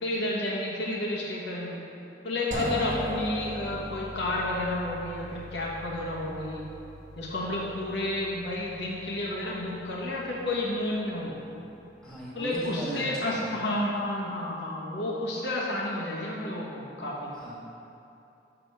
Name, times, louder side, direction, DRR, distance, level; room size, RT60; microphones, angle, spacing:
voice 1, 0.0-1.8 2.2-6.6 7.2-11.4 12.3-17.3, left 1 dB, 80° left, -4 dB, 1.2 m, -31 dB
sound 1, 2.5-12.3, left 1 dB, 45° right, 0.9 m, -39 dB
voice 2, 12.0-13.5 17.3-17.6, right 1 dB, 5° left, -8 dB, 1.7 m, -37 dB
6.1 x 5.0 x 6.1 m, 2.9 s
head